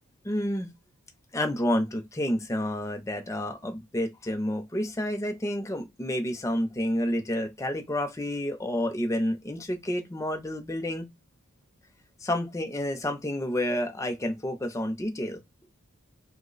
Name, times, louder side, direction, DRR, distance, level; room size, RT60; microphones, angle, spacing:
voice 1, 0.2-0.7 1.3-11.1 12.2-15.4, left 1 dB, 15° left, 0.5 m, -29 dB
2.9 x 2.0 x 3.8 m
head